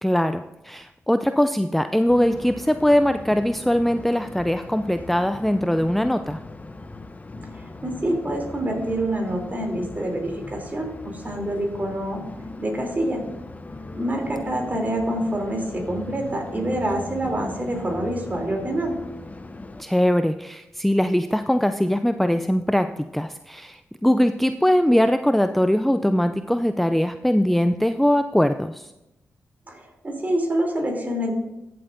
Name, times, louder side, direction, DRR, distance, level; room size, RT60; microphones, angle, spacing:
voice 1, 0.0-6.4 19.8-28.9, equal, 5° left, 9 dB, 0.4 m, -21 dB
sound 1, 2.1-19.8, left 2 dB, 30° left, 0.7 m, -38 dB
voice 2, 7.5-12.2 12.6-13.2 13.9-19.0 29.7-31.3, right 1 dB, 30° right, 1 dB, 3.2 m, -26 dB
14.0 x 7.7 x 2.6 m, 0.93 s
supercardioid pair, 40°, 5 cm